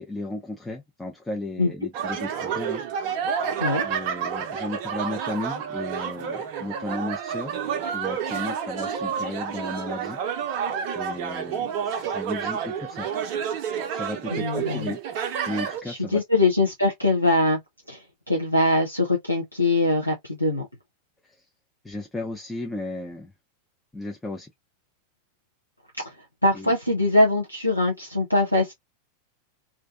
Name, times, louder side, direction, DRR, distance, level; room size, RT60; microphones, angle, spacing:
voice 1, 0.0-2.8 3.8-7.6 7.9-10.2 10.9-13.1 13.9-15.0 15.5-16.2 21.2-21.4 21.8-23.3 23.9-24.5 26.5-26.7, left 2 dB, 5° left, 0.5 m, -34 dB
sound 1, 1.9-15.8, right 7 dB, 45° right, 0.5 m, -29 dB
voice 2, 14.3-14.9 15.9-17.6 17.9-20.7 26.0-28.7, left 2 dB, 90° left, 0.5 m, -22 dB
2.5 x 2.2 x 2.4 m
figure-of-eight pair, 90°, 0 cm